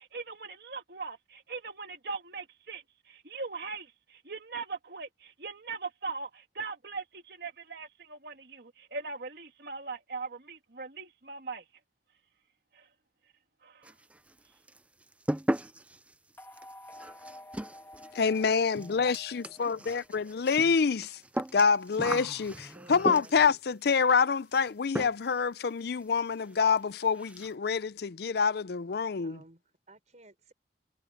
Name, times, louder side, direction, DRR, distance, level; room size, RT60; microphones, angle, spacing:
voice 1, 0.0-11.6 12.7-12.9 13.6-13.9, right 4 dB, 60° right, 2.4 m, -40 dB
sound 1, 13.8-14.4 14.7-23.6 24.5-24.7 24.9-25.4 25.7-25.8 26.2-26.3 26.6-26.7 27.0-27.5, right 1 dB, 5° right, 0.4 m, -37 dB
sound 2, 16.4-20.6, left 1 dB, 10° left, 1.9 m, -51 dB
voice 2, 18.2-21.2 21.5-29.4, left 5 dB, 60° left, 0.5 m, -27 dB
voice 3, 22.7-23.6 29.2-30.5, right 2 dB, 40° right, 5.1 m, -55 dB
head